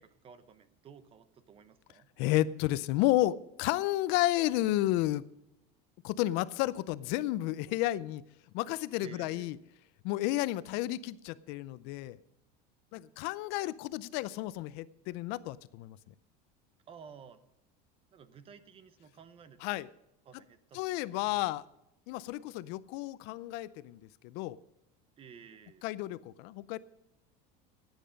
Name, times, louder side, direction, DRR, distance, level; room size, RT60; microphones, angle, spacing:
voice 1, 0.0-2.1 9.0-9.6 16.9-17.4 18.1-19.6 20.2-21.4 25.2-25.9, right 6 dB, 30° right, 13 dB, 0.9 m, -53 dB
voice 2, 2.2-5.2 6.0-8.2 8.5-9.6 10.0-12.2 12.9-16.0 19.6-19.9 20.7-21.6 22.1-24.6 25.8-26.8, left 16 dB, 60° left, 18 dB, 0.5 m, -32 dB
15.5 x 9.0 x 5.2 m, 0.86 s
cardioid pair, 150°, 20 cm